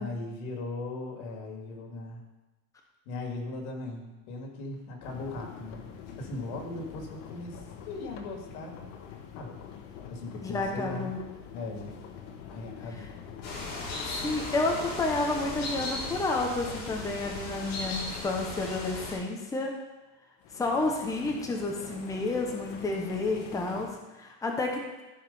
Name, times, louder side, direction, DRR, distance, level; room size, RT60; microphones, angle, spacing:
voice 1, 0.0-2.2 3.1-5.9 6.2-8.9 9.3-9.6 10.1-11.1 11.5-11.9 12.5-13.1, left 2 dB, 90° left, 1 dB, 2.5 m, -38 dB
sound 1, 5.0-18.6 20.4-23.9, left 7 dB, 70° left, 1.4 m, -45 dB
voice 2, 10.4-11.2 14.1-19.7 20.5-24.8, left 2 dB, 10° left, 1 dB, 0.9 m, -30 dB
sound 2, 13.4-19.1, left 2 dB, 50° left, 3.5 m, -37 dB
14.0 x 4.8 x 5.5 m, 1.1 s
cardioid pair, 165°, 41 cm